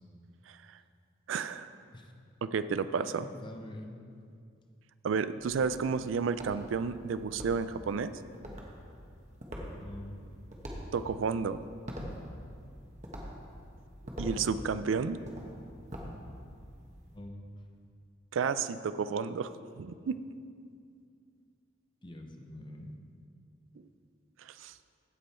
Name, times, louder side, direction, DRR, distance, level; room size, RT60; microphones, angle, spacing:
voice 1, 1.3-1.7 2.4-3.2 5.0-8.1 10.9-11.6 14.2-15.2 18.3-20.2 24.4-24.7, right 5 dB, 85° right, 13 dB, 0.4 m, -31 dB
voice 2, 3.1-4.0 9.8-10.2 14.2-14.5 17.1-17.4 22.0-22.9, left 1 dB, 25° left, 4 dB, 0.7 m, -45 dB
sound 1, 5.4-17.2, equal, 40° right, 1.3 m, -45 dB
15.5 x 5.4 x 4.3 m, 2.3 s
head